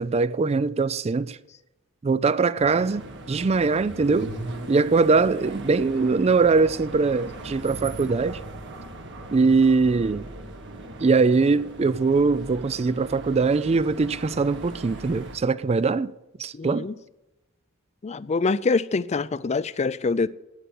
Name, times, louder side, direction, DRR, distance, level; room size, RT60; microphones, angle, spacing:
voice 1, 0.0-1.4 2.0-4.3 4.7-8.4 9.3-10.3 11.0-16.1 16.4-16.9, right 4 dB, 30° right, 0.4 m, -22 dB
sound 1, 2.6-15.4, right 1 dB, 60° right, 1.6 m, -39 dB
voice 2, 16.5-16.9 18.0-20.3, left 4 dB, 30° left, 0.4 m, -25 dB
11.0 x 9.0 x 8.3 m
head